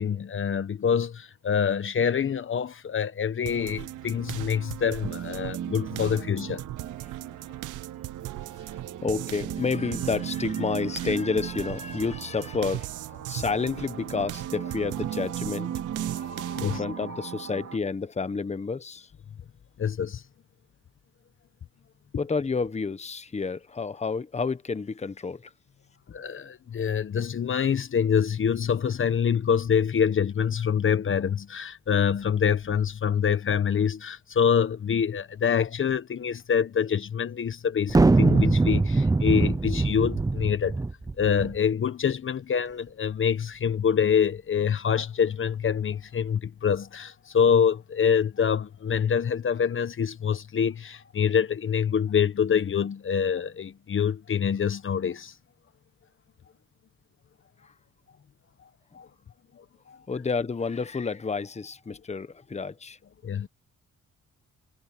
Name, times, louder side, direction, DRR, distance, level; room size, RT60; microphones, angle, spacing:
voice 1, 0.0-6.6 16.5-16.8 19.8-20.2 26.1-40.8 41.2-55.3 58.9-59.1 59.9-60.0 63.2-63.5, left 7 dB, 40° left, 1.2 m, -25 dB
sound 1, 3.5-16.8, right 15 dB, 85° right, 0.9 m, -38 dB
sound 2, 5.0-17.8, right 9 dB, 60° right, 2.5 m, -37 dB
voice 2, 9.0-15.7 16.0-19.1 22.2-25.5 57.6-57.7 60.1-63.0, left 4 dB, 20° left, 1.2 m, -30 dB
sound 3, 37.9-41.5, right 3 dB, 10° right, 0.6 m, -22 dB
cardioid pair, 90°, 30 cm